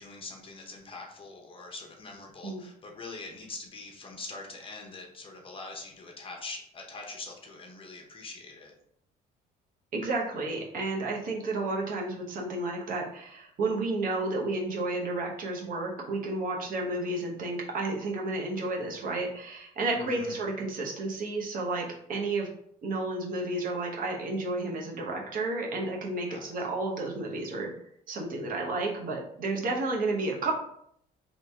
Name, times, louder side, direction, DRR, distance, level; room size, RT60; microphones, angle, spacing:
voice 1, 0.0-8.7 19.9-20.3 26.3-26.7, left 3 dB, 30° left, 1 dB, 0.8 m, -43 dB
voice 2, 9.9-22.5 22.8-27.7 28.1-30.5, right 2 dB, 55° right, -1 dB, 0.9 m, -31 dB
2.9 x 2.8 x 3.4 m, 0.70 s
cardioid pair, 110°, 17 cm